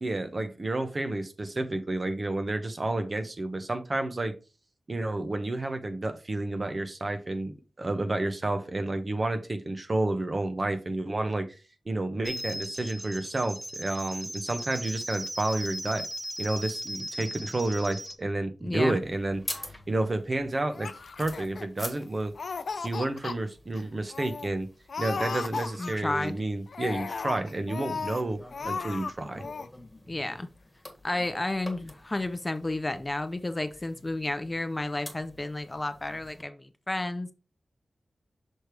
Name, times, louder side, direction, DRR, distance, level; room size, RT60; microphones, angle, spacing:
voice 1, 0.0-4.3 4.9-11.5 11.9-16.1 16.4-19.4 19.9-20.9 21.2-22.3 22.8-24.7 25.0-28.4 28.6-29.5, right 2 dB, 40° right, 0.9 m, -30 dB
sound 1, 12.2-18.2, equal, 15° right, 0.7 m, -37 dB
voice 2, 18.6-19.0 25.8-26.4 30.1-30.5 31.0-37.3, left 2 dB, 25° left, 0.6 m, -31 dB
sound 2, 19.0-36.4, left 1 dB, 5° left, 1.5 m, -47 dB
Laughter, 20.7-22.0 22.3-23.4 23.8-23.9 24.1-24.5 24.9-26.2 26.7-28.2 28.5-29.1 29.4-29.7, left 5 dB, 75° left, 0.4 m, -35 dB
6.4 x 3.4 x 4.5 m
wide cardioid pair, 90°, 0 cm